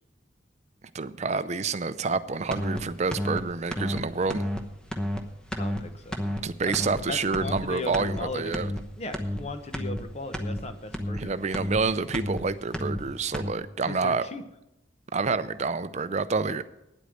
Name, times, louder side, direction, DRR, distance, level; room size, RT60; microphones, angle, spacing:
voice 1, 0.9-4.4 6.4-8.7 11.1-14.3 15.1-16.6, right 4 dB, 35° right, 13 dB, 0.5 m, -28 dB
sound 1, 2.5-2.8 3.1-3.4 3.7-4.0 4.3-4.6 4.9-5.2 5.5-5.8 6.1-6.4 6.7-7.0 7.3-7.6 7.9-8.2 8.5-8.8 9.1-9.4 9.7-10.0 10.3-10.6 10.9-11.2 11.5-11.8 12.1-12.4 12.7-13.0 13.3-13.5, left 1 dB, 5° left, 0.9 m, -30 dB
voice 2, 5.5-6.2 6.6-6.7 7.1-8.6 9.0-11.4 13.9-14.4, left 2 dB, 35° left, 8 dB, 1.0 m, -37 dB
9.5 x 8.3 x 7.7 m, 0.87 s
head